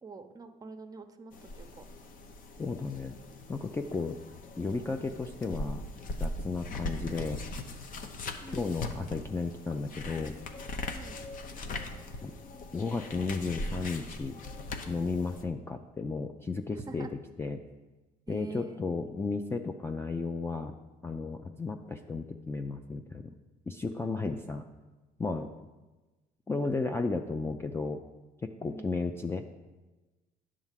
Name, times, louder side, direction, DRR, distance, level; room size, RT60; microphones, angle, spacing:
voice 1, 0.0-1.8 8.4-8.7 10.9-11.2 16.7-17.1 18.3-18.8 24.2-24.3 28.6-28.9, right 3 dB, 20° right, 8 dB, 0.7 m, -45 dB
sound 1, 1.3-15.4, left 2 dB, 55° left, 0.8 m, -40 dB
voice 2, 2.6-3.2 3.5-4.2 4.6-5.8 6.2-7.4 8.5-10.4 12.2-12.3 12.7-14.4 14.9-17.1 17.4-17.6 18.3-20.8 21.0-23.3 23.7-24.6 25.2-25.5 26.5-28.0 28.4-29.4, left 3 dB, 15° left, 5 dB, 0.4 m, -34 dB
10.5 x 3.7 x 7.4 m, 1.2 s
cardioid pair, 110°, 17 cm